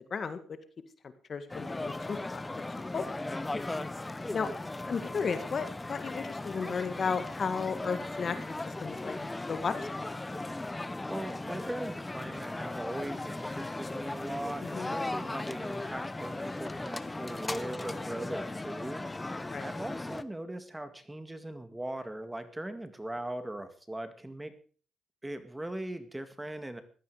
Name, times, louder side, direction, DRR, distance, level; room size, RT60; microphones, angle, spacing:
voice 1, 1.3-2.4 2.9-3.1 4.3-4.5 4.8-8.3 8.6-9.1 9.5-10.2 14.7-14.9 19.5-19.7, left 5 dB, 45° left, 11 dB, 1.7 m, -34 dB
sound 1, 1.5-20.2, left 2 dB, 15° left, 0.8 m, -37 dB
voice 2, 11.1-19.1 19.6-24.5 25.2-26.8, right 1 dB, 10° right, 10 dB, 1.9 m, -40 dB
16.0 x 12.0 x 4.9 m, 0.41 s
cardioid pair, 90°, 0 cm